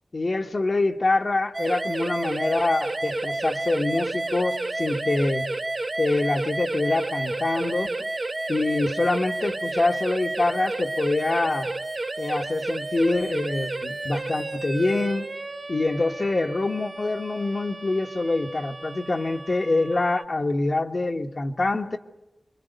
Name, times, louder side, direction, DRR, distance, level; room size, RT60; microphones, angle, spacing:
voice 1, 0.1-5.5 6.0-8.1 8.5-11.7 12.2-15.3 15.7-22.0, left 2 dB, 55° left, 1.4 m, -25 dB
sound 1, 1.5-20.2, right 2 dB, 45° right, 0.9 m, -31 dB
26.5 x 22.5 x 8.0 m
wide cardioid pair, 60°, 0 cm